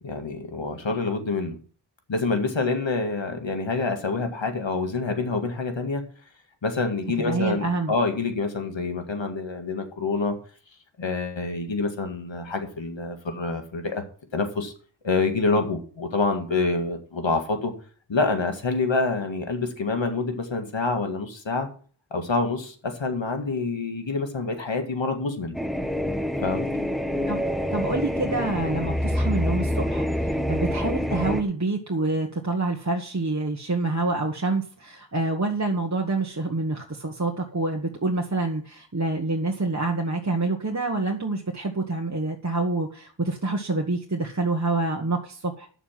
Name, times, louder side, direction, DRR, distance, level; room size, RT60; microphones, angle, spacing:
voice 1, 0.0-1.6 2.1-6.1 6.6-10.4 11.0-14.0 14.3-14.7 15.0-17.7 18.1-21.7 22.1-25.6 26.4-26.7, left 3 dB, 80° left, 5 dB, 2.0 m, -27 dB
voice 2, 7.2-7.9 27.3-27.4 27.7-45.7, right 2 dB, 40° right, 0 dB, 1.5 m, -27 dB
sound 1, 25.5-31.4, equal, ahead, 1.1 m, -26 dB
10.0 x 7.0 x 5.9 m, 0.42 s
wide cardioid pair, 50°, 45 cm